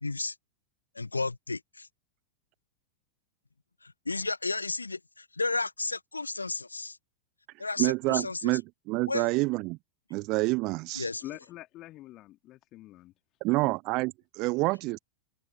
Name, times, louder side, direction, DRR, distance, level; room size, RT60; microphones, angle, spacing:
voice 1, 0.0-0.3 0.9-1.9 3.8-7.0 7.6-8.6 9.1-9.3 10.9-11.2, left 3 dB, 80° left, 1.6 m, -33 dB
voice 2, 7.8-9.8 10.1-11.1 13.4-15.0, right 24 dB, 40° right, 0.9 m, -28 dB
voice 3, 11.2-13.1 13.6-13.7, left 16 dB, 35° left, 3.0 m, -45 dB
figure-of-eight pair, 90°, 0 cm